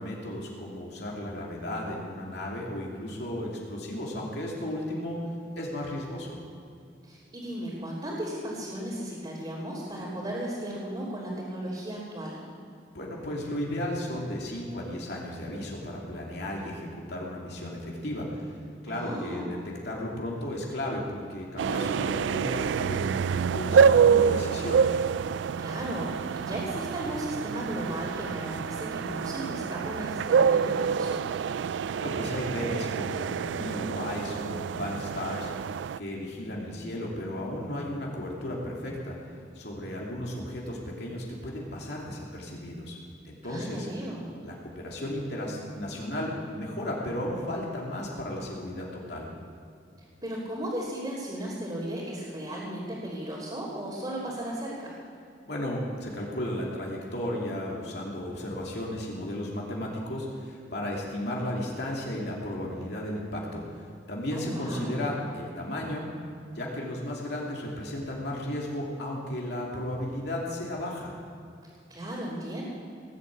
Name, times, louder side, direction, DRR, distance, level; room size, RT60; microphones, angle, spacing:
voice 1, 0.0-5.2 5.6-6.4 12.9-18.5 18.8-19.6 19.8-24.8 31.6-35.5 36.0-39.2 39.5-43.0 43.2-43.9 44.4-49.3 55.4-66.1 66.5-71.1, left 1 dB, 65° left, -3 dB, 2.8 m, -34 dB
voice 2, 7.0-12.4 18.9-19.5 25.6-31.2 43.4-44.3 50.2-54.9 64.3-65.0 71.9-72.6, right 1 dB, 25° right, -8 dB, 3.3 m, -35 dB
sound 1, 21.6-36.0, right 6 dB, 90° right, 0.3 m, -26 dB
18.5 x 8.2 x 8.5 m, 2.4 s
head